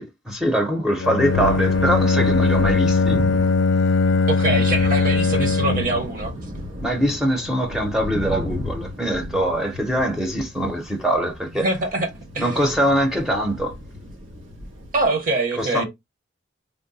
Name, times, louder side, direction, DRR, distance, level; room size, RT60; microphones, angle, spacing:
voice 1, 0.0-3.2 6.8-11.7 12.4-13.7 15.6-15.8, equal, 5° right, 0.6 m, -23 dB
Bowed string instrument, 1.0-6.1, left 4 dB, 65° left, 0.4 m, -20 dB
Thunder, 1.2-15.0, equal, 85° right, 1.3 m, -33 dB
voice 2, 4.3-6.3 11.6-12.1 12.3-12.6 14.9-15.8, right 2 dB, 45° right, 0.9 m, -23 dB
3.6 x 2.1 x 3.9 m
head